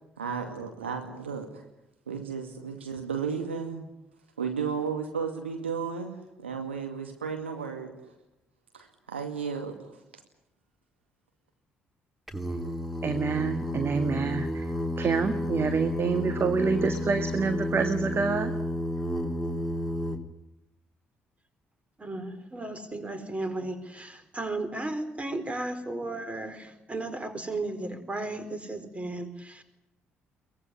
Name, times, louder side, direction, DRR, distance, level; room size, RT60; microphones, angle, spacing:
voice 1, 0.2-1.5 2.1-3.9 4.4-7.9 8.7-9.8, right 6 dB, 80° right, 4 dB, 2.3 m, -33 dB
Singing, 12.3-20.2, left 1 dB, ahead, 3.4 m, -31 dB
voice 2, 13.0-18.5, right 5 dB, 40° right, 8 dB, 1.9 m, -27 dB
voice 3, 22.0-29.6, right 2 dB, 20° right, 10 dB, 4.5 m, -35 dB
23.5 x 19.5 x 9.9 m, 0.89 s
figure-of-eight pair, 45°, 6 cm